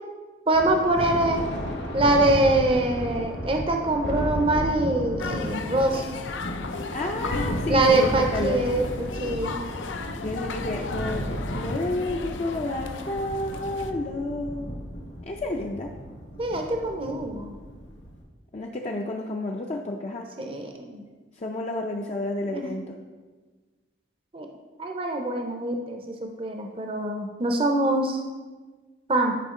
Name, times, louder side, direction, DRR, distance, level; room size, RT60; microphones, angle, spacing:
Thunder, 0.5-18.2, equal, 65° left, 1.3 m, -34 dB
voice 1, 0.5-1.5 1.9-6.1 7.7-9.6 16.4-17.6 20.4-21.0 22.5-22.7 24.3-24.5 24.8-28.2 29.1-29.3, right 2 dB, 30° right, 3 dB, 0.6 m, -24 dB
sound 1, 5.2-13.9, left 3 dB, 85° left, 0.5 m, -35 dB
voice 2, 6.9-8.6 10.2-14.7 15.2-15.9 18.5-20.3 21.4-23.0, left 2 dB, 35° left, 1 dB, 0.4 m, -30 dB
10.0 x 5.0 x 3.7 m, 1.4 s
head